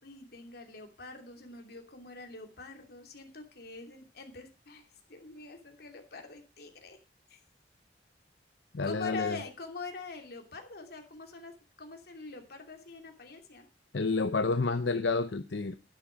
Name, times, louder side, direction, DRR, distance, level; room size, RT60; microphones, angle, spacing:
voice 1, 0.0-7.0 7.3-7.4 8.8-11.5 11.8-13.7, left 4 dB, 60° left, 4 dB, 2.8 m, -44 dB
voice 2, 8.7-9.4 13.9-15.7, left 3 dB, 80° left, 10 dB, 0.7 m, -29 dB
10.5 x 10.0 x 5.1 m, 0.30 s
head